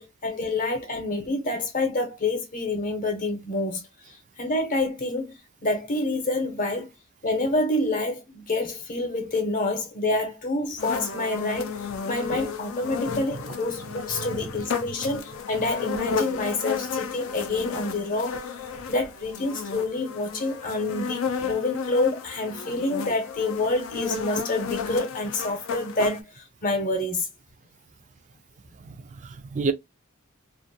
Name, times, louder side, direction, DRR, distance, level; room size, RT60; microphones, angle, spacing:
voice 1, 0.0-3.8 4.1-6.9 7.2-18.6 18.9-27.3, left 2 dB, 40° left, 0.8 m, -27 dB
sound 1, 10.8-26.2, left 5 dB, 65° left, 0.5 m, -33 dB
voice 2, 13.1-13.4 28.8-29.7, right 4 dB, 35° right, 0.3 m, -31 dB
2.5 x 2.1 x 2.6 m
head